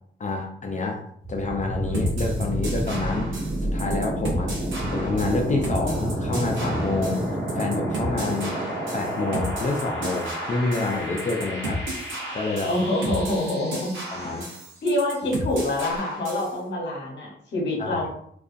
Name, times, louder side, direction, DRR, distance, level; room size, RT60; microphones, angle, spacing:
voice 1, 0.2-1.0 1.3-3.3 3.6-4.5 4.9-7.3 7.6-8.6 8.9-11.8 12.3-12.9 14.1-14.5 17.8-18.0, left 3 dB, 40° left, 1 dB, 0.5 m, -28 dB
sound 1, 1.2-15.0, equal, 60° right, 1.0 m, -30 dB
sound 2, 1.9-16.5, right 1 dB, 90° right, 0.7 m, -34 dB
voice 2, 12.7-14.0 14.8-18.1, left 1 dB, 65° left, -1 dB, 0.9 m, -26 dB
2.3 x 2.2 x 2.5 m, 0.67 s
cardioid pair, 60°, 19 cm